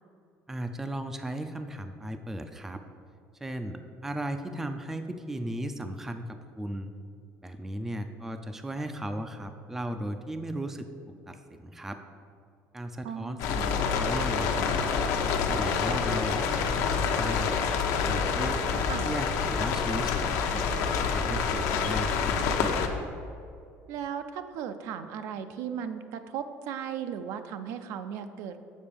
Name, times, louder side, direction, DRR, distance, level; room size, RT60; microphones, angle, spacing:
voice 1, 0.5-2.8 3.4-6.9 7.4-12.0 12.7-14.7 15.3-17.5 18.1-20.7 21.0-22.7, right 1 dB, 5° right, 8 dB, 0.3 m, -36 dB
voice 2, 13.0-13.4 18.9-19.1 23.9-28.6, right 8 dB, 70° right, 9 dB, 0.5 m, -36 dB
sound 1, 13.4-22.9, left 6 dB, 70° left, 0.8 m, -27 dB
7.3 x 4.3 x 6.8 m, 2.4 s
cardioid pair, 160°, 6 cm